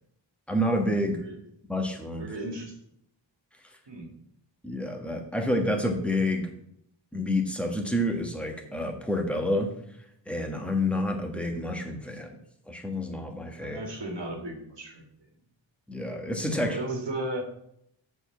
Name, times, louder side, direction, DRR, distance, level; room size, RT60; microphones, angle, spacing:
voice 1, 0.5-1.2 1.7-2.3 4.6-6.5 7.1-9.7 10.3-12.3 12.7-13.8 15.9-16.8, left 1 dB, 5° left, 2 dB, 1.4 m, -28 dB
voice 2, 2.2-2.7 3.9-4.1 13.6-15.0 16.5-17.4, right 1 dB, 65° right, 2 dB, 2.0 m, -35 dB
7.0 x 4.7 x 7.0 m, 0.73 s
wide cardioid pair, 120°, 46 cm